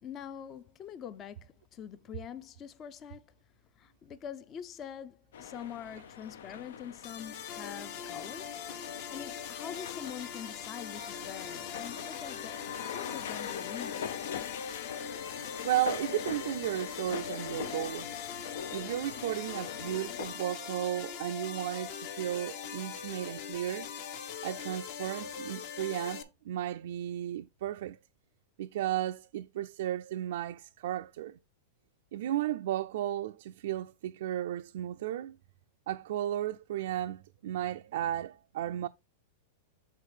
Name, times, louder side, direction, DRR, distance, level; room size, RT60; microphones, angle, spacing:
voice 1, 0.0-3.3 3.7-8.6 9.1-12.6 12.9-14.0, left 8 dB, 25° left, 0.5 m, -44 dB
sound 1, 5.3-20.4, left 8 dB, 80° left, 0.7 m, -42 dB
sound 2, 7.0-26.2, left 7 dB, 50° left, 1.1 m, -41 dB
voice 2, 15.6-18.1 18.7-23.9 24.4-28.0 28.6-31.4 32.1-35.4 35.9-38.9, right 12 dB, 70° right, 0.4 m, -34 dB
6.5 x 4.0 x 4.9 m
supercardioid pair, 145°, 0 cm